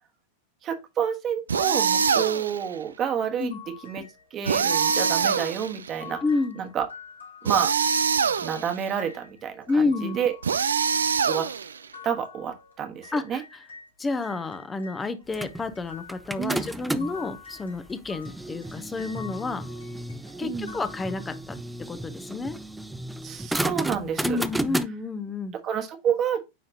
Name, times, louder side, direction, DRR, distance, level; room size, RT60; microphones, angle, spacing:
voice 1, 0.6-3.5 3.8-4.0 4.3-6.2 6.6-6.9 7.4-7.7 8.4-10.3 11.3-11.5 12.0-13.4 16.4-16.7 20.4-20.7 23.2-24.4 25.6-26.4, right 8 dB, 30° right, 1.4 m, -29 dB
sound 1, 1.5-2.6 4.5-5.9 7.5-8.7 10.4-11.9, right 6 dB, 70° right, 0.4 m, -24 dB
sound 2, 3.4-13.9 14.2-21.6, left 7 dB, 80° left, 2.2 m, -47 dB
voice 2, 6.2-6.6 9.7-10.2 13.1-13.4 14.0-19.6 20.4-21.6 21.9-22.6 24.2-25.5, left 3 dB, 15° left, 0.9 m, -29 dB
sound 3, 15.3-17.3 17.9-24.9, right 1 dB, 5° right, 0.5 m, -33 dB
9.3 x 3.7 x 2.8 m
figure-of-eight pair, 90°, 0 cm